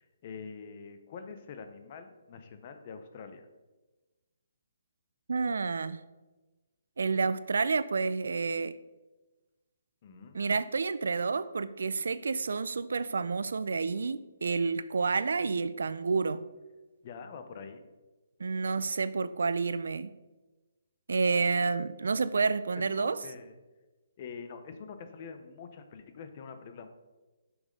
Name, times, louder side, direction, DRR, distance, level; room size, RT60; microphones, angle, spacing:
voice 1, 0.0-3.5 10.0-10.4 17.0-17.9 22.9-23.5 24.2-26.9, left 5 dB, 25° left, 0.6 m, -45 dB
voice 2, 5.3-6.0 7.0-8.7 10.3-16.4 18.4-20.1 21.1-23.2, right 4 dB, 75° right, 0.4 m, -29 dB
6.4 x 6.1 x 5.1 m
hypercardioid pair, 180°, 0 cm